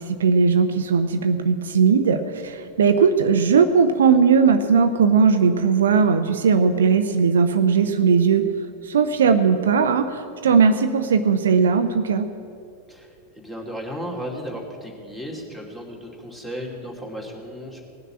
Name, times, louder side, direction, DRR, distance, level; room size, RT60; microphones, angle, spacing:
voice 1, 0.0-8.5 8.8-12.3, right 5 dB, 65° right, 9 dB, 0.6 m, -18 dB
voice 2, 12.9-17.8, equal, 5° left, -1 dB, 2.6 m, -35 dB
18.5 x 6.7 x 8.5 m, 2.5 s
figure-of-eight pair, 90°, 0 cm